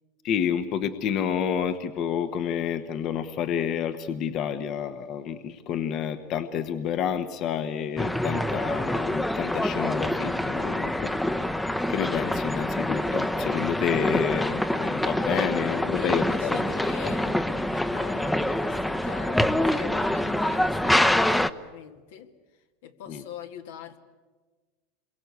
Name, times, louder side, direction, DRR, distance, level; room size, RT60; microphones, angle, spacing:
voice 1, 0.2-11.4 11.9-16.6 17.0-17.4 23.1-23.2, left 8 dB, 45° left, 10 dB, 1.1 m, -29 dB
sound 1, 8.0-21.5, left 1 dB, 5° left, 0.8 m, -26 dB
voice 2, 15.8-22.3 22.8-24.0, left 8 dB, 80° left, 6 dB, 2.1 m, -42 dB
27.5 x 23.0 x 8.2 m, 1.3 s
supercardioid pair, 120°, 0 cm